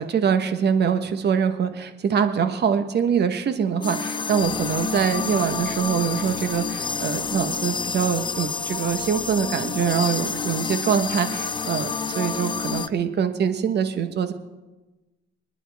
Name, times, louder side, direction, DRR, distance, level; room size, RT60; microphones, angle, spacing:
voice 1, 0.0-14.3, right 7 dB, 55° right, 9 dB, 1.3 m, -24 dB
sound 1, 3.8-12.9, left 5 dB, 25° left, 0.5 m, -29 dB
sound 2, 4.4-12.8, left 6 dB, 75° left, 1.5 m, -42 dB
25.5 x 10.0 x 3.5 m, 1.1 s
cardioid pair, 90°, 20 cm